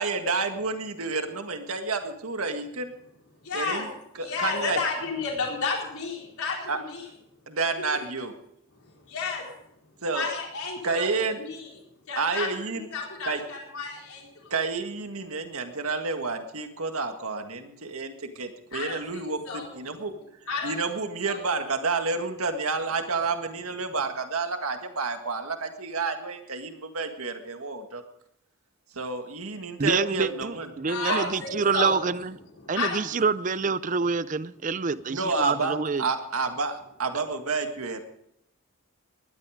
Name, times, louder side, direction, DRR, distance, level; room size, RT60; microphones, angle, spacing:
voice 1, 0.0-2.9 3.5-3.9 4.1-4.8 6.7-6.8 7.5-8.3 10.0-10.3 10.8-11.4 12.1-12.9 13.2-13.4 14.5-20.1 20.6-28.0 28.9-30.7 31.1-31.3 35.1-38.0, right 4 dB, 90° right, 6 dB, 1.8 m, -30 dB
voice 2, 3.4-3.9 4.2-7.0 7.9-8.0 9.1-9.5 10.1-11.7 12.1-12.5 12.7-14.5 18.7-19.7 20.5-20.7 21.3-21.4 30.8-31.9 32.5-33.2, left 4 dB, 85° left, -1 dB, 4.4 m, -32 dB
voice 3, 29.8-32.4 32.7-36.0, right 5 dB, 35° right, 16 dB, 0.5 m, -26 dB
19.0 x 12.5 x 5.1 m, 0.76 s
head